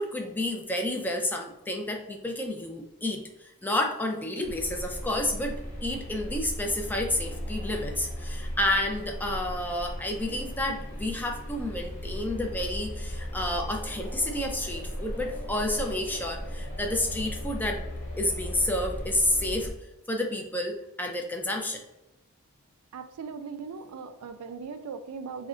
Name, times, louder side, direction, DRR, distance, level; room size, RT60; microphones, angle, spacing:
voice 1, 0.0-17.8 18.2-19.7 20.1-21.8, left 1 dB, 10° left, 2 dB, 0.3 m, -30 dB
sound 1, 4.4-19.7, equal, 30° left, 1.0 m, -37 dB
voice 2, 22.9-25.5, right 5 dB, 80° right, 8 dB, 0.3 m, -39 dB
2.4 x 2.1 x 3.6 m, 0.93 s
head